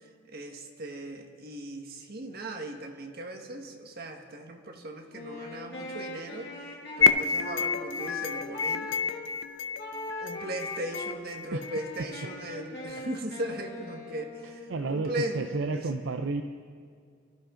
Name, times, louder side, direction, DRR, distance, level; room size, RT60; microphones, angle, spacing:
voice 1, 0.3-8.9 10.2-15.9, right 1 dB, 55° right, 4 dB, 1.6 m, -38 dB
Wind instrument woodwind instrument, 5.1-9.3 9.8-11.2 11.6-14.8, left 1 dB, 60° left, 5.2 m, -41 dB
sound 1, 7.0-12.0, left 5 dB, 75° left, 0.6 m, -29 dB
voice 2, 14.7-16.4, right 3 dB, 70° right, 7 dB, 0.6 m, -31 dB
24.5 x 13.0 x 3.8 m, 2.2 s
head